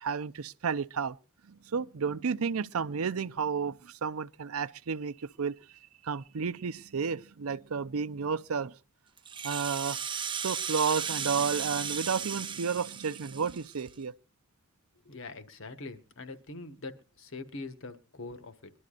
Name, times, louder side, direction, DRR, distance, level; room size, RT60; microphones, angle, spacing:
voice 1, 0.0-1.2 1.5-5.5 6.0-8.7 9.4-10.0 10.4-14.1, right 6 dB, 75° right, 0.6 m, -32 dB
Rattle (instrument), 9.2-13.9, right 7 dB, 20° right, 0.7 m, -35 dB
voice 2, 15.0-18.7, left 3 dB, 65° left, 1.4 m, -43 dB
22.0 x 12.0 x 2.5 m
head